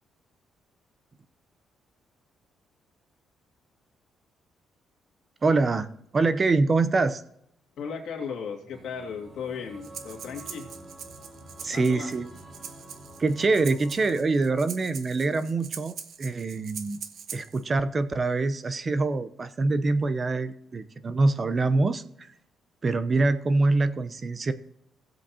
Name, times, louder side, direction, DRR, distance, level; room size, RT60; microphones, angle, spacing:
voice 1, 5.4-5.9 6.1-7.2 11.6-12.3 13.2-17.0 17.3-22.0 22.8-24.5, right 3 dB, 35° right, 13 dB, 0.7 m, -25 dB
voice 2, 7.8-10.7 11.6-12.1, left 6 dB, 75° left, 1 dB, 2.1 m, -36 dB
sound 1, 8.7-14.2, right 1 dB, 20° right, 2.7 m, -48 dB
Breathing, 9.8-17.6, right 7 dB, 65° right, 0.8 m, -43 dB
16.0 x 7.8 x 2.9 m, 0.73 s
cardioid pair, 90°, 0 cm